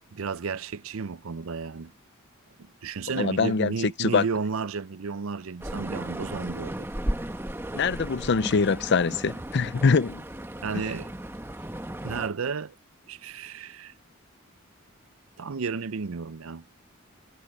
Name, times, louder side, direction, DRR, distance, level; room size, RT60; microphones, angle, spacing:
voice 1, 0.1-1.9 2.6-6.9 10.6-11.1 12.0-12.7 13.1-13.9 15.4-16.7, right 5 dB, 75° right, 0.6 m, -32 dB
voice 2, 3.2-4.2 7.7-10.2, left 5 dB, 55° left, 0.5 m, -24 dB
sound 1, 5.6-12.3, right 1 dB, 10° right, 1.1 m, -35 dB
head